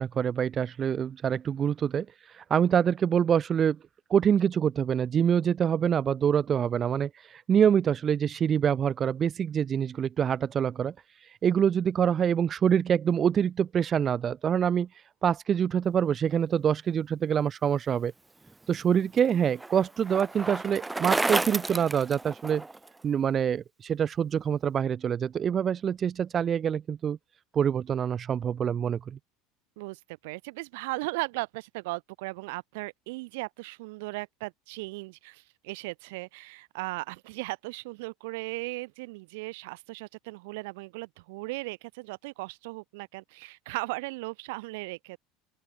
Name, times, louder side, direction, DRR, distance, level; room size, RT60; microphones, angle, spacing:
voice 1, 0.0-3.8 4.1-10.9 11.2-14.9 15.2-18.1 18.7-22.6 23.0-27.2 27.5-29.2, right 8 dB, 30° right, 0.4 m, -26 dB
Bicycle, 18.5-22.9, right 2 dB, 10° right, 2.4 m, -31 dB
voice 2, 29.8-45.2, right 24 dB, 80° right, 2.3 m, -37 dB
open air
supercardioid pair, 140°, 0 cm